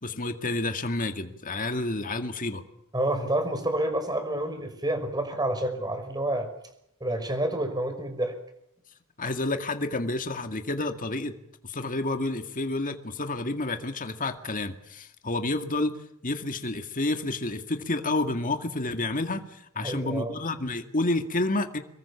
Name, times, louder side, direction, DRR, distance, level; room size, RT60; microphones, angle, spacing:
voice 1, 0.0-2.6 9.2-11.3 11.6-15.9 16.2-21.8, left 2 dB, 40° left, 7 dB, 2.1 m, -29 dB
voice 2, 2.9-6.5 7.0-8.4 19.8-20.4, right 1 dB, 20° right, 8 dB, 5.6 m, -28 dB
26.5 x 22.5 x 7.3 m, 0.76 s
head